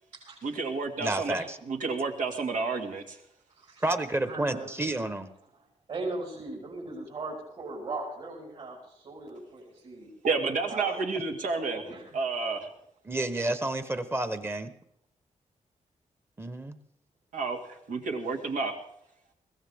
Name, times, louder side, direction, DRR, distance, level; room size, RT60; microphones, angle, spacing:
voice 1, 0.4-3.2 10.2-11.8 12.1-12.7 17.3-18.7, right 4 dB, 90° right, 3 dB, 2.2 m, -30 dB
voice 2, 1.0-1.6 3.8-5.3 13.0-14.7 16.4-16.8, right 2 dB, 20° right, 10 dB, 1.0 m, -30 dB
voice 3, 4.2-4.7 5.9-10.1 10.7-11.0 11.6-12.2, right 3 dB, 55° right, -5 dB, 6.0 m, -38 dB
22.0 x 15.5 x 3.6 m, 0.74 s
wide cardioid pair, 135°, 13 cm